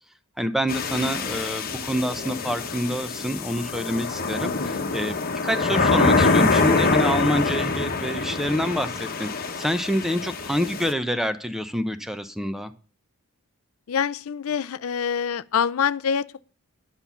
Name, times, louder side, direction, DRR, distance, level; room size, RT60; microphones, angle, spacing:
voice 1, 0.4-5.2 5.4-12.7, equal, ahead, 0.6 m, -27 dB
sound 1, 0.7-10.9, left 3 dB, 40° left, 1.1 m, -25 dB
voice 2, 4.4-4.9 13.9-16.5, left 7 dB, 65° left, 0.5 m, -26 dB
10.5 x 5.7 x 7.1 m
head